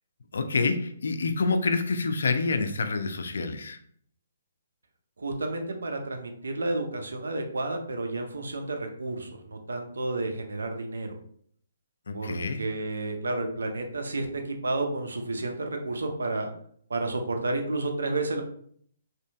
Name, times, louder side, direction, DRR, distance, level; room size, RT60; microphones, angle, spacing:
voice 1, 0.3-3.8 12.1-12.7, left 4 dB, 70° left, 8 dB, 0.4 m, -27 dB
voice 2, 5.2-11.2 12.1-16.5 16.9-18.4, right 2 dB, 80° right, 4 dB, 0.5 m, -31 dB
2.8 x 2.5 x 2.3 m, 0.62 s
hypercardioid pair, 140°, 0 cm